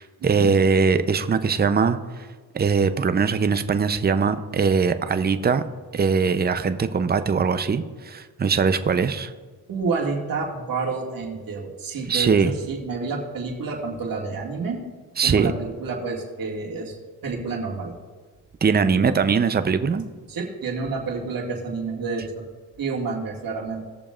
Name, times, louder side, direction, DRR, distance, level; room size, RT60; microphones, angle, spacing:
voice 1, 0.0-2.3 2.5-5.6 5.9-9.3 12.1-12.5 15.2-15.5 18.6-20.1, right 5 dB, 25° right, 10 dB, 0.6 m, -21 dB
voice 2, 9.7-14.8 15.2-16.9 17.2-17.9 20.3-22.4 22.8-23.8, right 4 dB, 60° right, -2 dB, 2.2 m, -29 dB
19.0 x 6.9 x 2.5 m, 1.4 s
cardioid pair, 80°, 38 cm